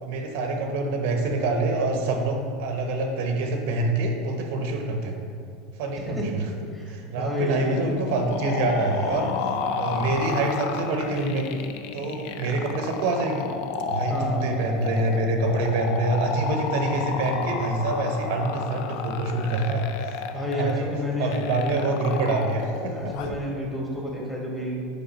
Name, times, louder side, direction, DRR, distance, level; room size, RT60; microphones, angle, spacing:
voice 1, 0.0-5.2 5.8-6.4 6.9-9.3 9.7-11.5 11.9-13.5 13.9-20.2 20.5-20.9 21.2-23.1, right 2 dB, 70° right, 4 dB, 0.7 m, -26 dB
voice 2, 6.7-7.9 8.8-9.3 10.0-10.1 14.1-14.5 20.3-21.8 22.1-22.3 22.9-25.0, left 1 dB, 10° left, -3 dB, 1.6 m, -30 dB
sound 1, 7.5-23.4, left 6 dB, 65° left, 0.4 m, -32 dB
5.3 x 4.7 x 5.1 m, 2.4 s
supercardioid pair, 110°, 0 cm